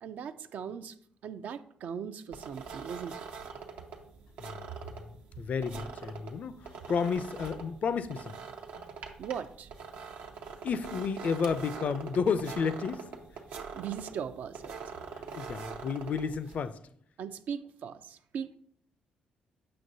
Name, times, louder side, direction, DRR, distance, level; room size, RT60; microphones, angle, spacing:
voice 1, 0.0-1.0 1.2-3.3 9.2-9.7 13.7-14.8 17.2-18.6, right 7 dB, 70° right, 0.4 m, -39 dB
sound 1, 2.3-16.7, right 5 dB, 85° right, 0.8 m, -44 dB
voice 2, 4.4-8.4 8.7-8.8 10.6-13.1 15.4-16.8, left 6 dB, 55° left, 0.4 m, -32 dB
7.6 x 5.9 x 2.7 m
cardioid pair, 75°, 3 cm